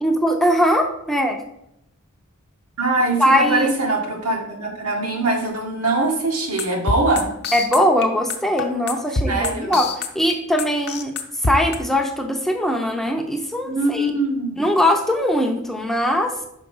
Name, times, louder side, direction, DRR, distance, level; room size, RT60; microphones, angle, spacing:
voice 1, 0.0-1.4 3.2-3.7 7.5-9.9 10.1-11.1 11.4-14.1 14.6-16.3, equal, ahead, 2 dB, 0.6 m, -20 dB
voice 2, 2.8-7.3 9.3-9.8 13.7-14.7, right 2 dB, 85° right, -1 dB, 1.8 m, -22 dB
sound 1, 6.6-11.8, left 3 dB, 50° left, 0.8 m, -24 dB
5.9 x 4.4 x 5.4 m, 0.81 s
head